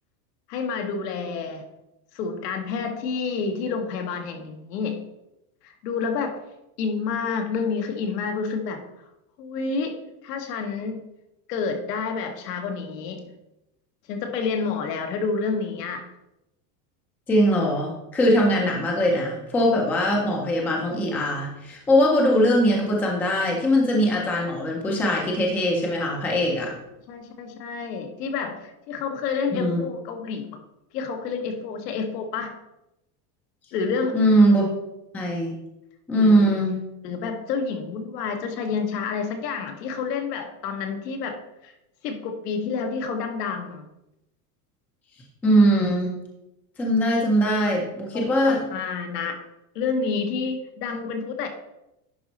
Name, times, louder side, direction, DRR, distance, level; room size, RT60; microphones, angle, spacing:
voice 1, 0.5-1.6 2.1-5.0 5.6-6.4 6.8-8.8 9.4-10.0 10.2-11.0 11.5-13.3 14.1-16.0 27.1-30.6 30.9-32.5 33.7-34.2 36.2-36.4 37.0-41.7 42.0-43.8 48.2-49.4 49.7-51.5, left 5 dB, 90° left, 5 dB, 1.4 m, -29 dB
voice 2, 17.3-26.7 29.5-29.8 34.1-34.7 35.1-35.5 36.1-36.7 45.4-46.1 46.8-48.6, equal, 5° left, -1 dB, 0.4 m, -21 dB
10.5 x 4.2 x 4.0 m, 0.91 s
supercardioid pair, 165°, 47 cm